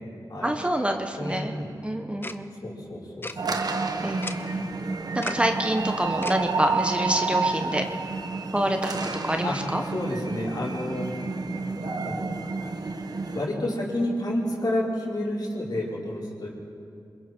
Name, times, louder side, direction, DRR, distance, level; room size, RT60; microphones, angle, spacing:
voice 1, 0.4-1.5 1.8-2.5 4.0-4.6 5.1-7.8 8.5-9.0 9.2-9.8, right 1 dB, 15° right, 4 dB, 1.2 m, -27 dB
voice 2, 1.1-1.7 2.6-3.6 9.4-9.6 9.9-11.1 11.8-12.3 13.3-16.5, left 1 dB, 60° left, -5 dB, 5.1 m, -30 dB
Tick-tock, 2.2-2.4 3.2-3.3 4.2-4.3 5.2-5.4 6.2-6.4, left 2 dB, 30° left, 0.8 m, -34 dB
sound 1, 3.4-13.5, right 3 dB, 55° right, 1.3 m, -30 dB
27.5 x 21.5 x 4.6 m, 2.5 s
wide cardioid pair, 70°, 8 cm